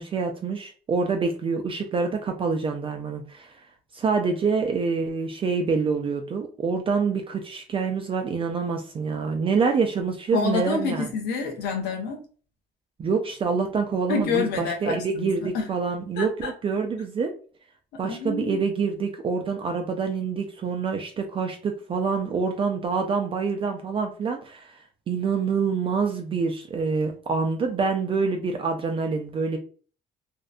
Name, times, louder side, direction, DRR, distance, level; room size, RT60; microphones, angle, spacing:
voice 1, 0.0-3.5 3.9-11.1 13.0-17.3 18.0-24.8 25.1-29.6, right 5 dB, 30° right, 4 dB, 0.4 m, -26 dB
voice 2, 10.3-12.2 14.1-15.7 16.2-16.5 17.9-18.6, left 4 dB, 85° left, 1 dB, 0.7 m, -28 dB
2.6 x 2.1 x 2.3 m, 0.40 s
cardioid pair, 110°, 17 cm